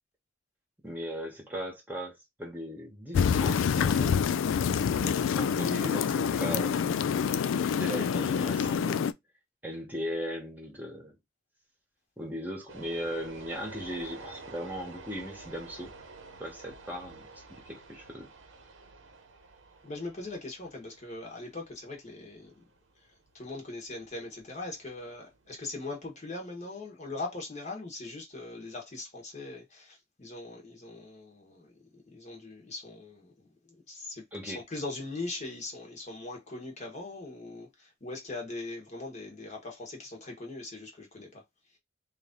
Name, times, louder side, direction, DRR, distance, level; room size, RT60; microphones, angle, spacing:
voice 1, 0.8-4.4 4.9-6.9 7.7-9.1 9.6-11.2 12.2-15.9 16.4-18.3 34.3-34.6, equal, 10° right, 1.1 m, -38 dB
sound 1, 3.1-9.1, left 7 dB, 85° left, 0.3 m, -27 dB
sound 2, 12.7-25.8, right 3 dB, 80° right, 0.9 m, -50 dB
voice 2, 19.8-22.7 23.0-23.1 23.3-41.4, left 2 dB, 35° left, 1.2 m, -41 dB
3.2 x 2.6 x 3.7 m
head